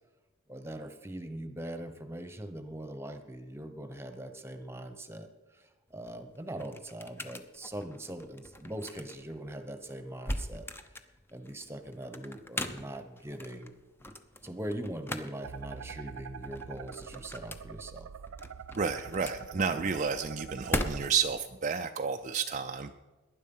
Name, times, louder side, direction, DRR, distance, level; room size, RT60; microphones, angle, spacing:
voice 1, 0.5-5.3 5.5-10.7 11.3-13.7 14.4-18.1 19.7-19.8, right 1 dB, 15° right, 8 dB, 1.1 m, -41 dB
sound 1, 5.9-21.4, left 1 dB, 10° left, 0.8 m, -41 dB
sound 2, 15.4-21.1, right 7 dB, 85° right, 0.4 m, -45 dB
voice 2, 18.7-23.0, right 5 dB, 35° right, 5 dB, 0.5 m, -31 dB
19.0 x 10.5 x 5.5 m, 1.2 s
head